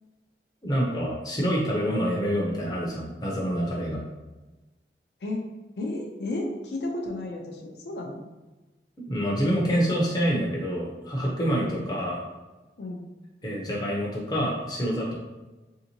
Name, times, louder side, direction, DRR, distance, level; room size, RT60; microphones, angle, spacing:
voice 1, 0.6-4.0 9.0-12.2 13.4-15.1, equal, 25° left, -3 dB, 0.6 m, -27 dB
voice 2, 5.8-8.2 11.6-11.8 12.8-13.0, left 2 dB, 70° left, 1 dB, 0.5 m, -33 dB
3.5 x 2.8 x 2.7 m, 1.1 s
head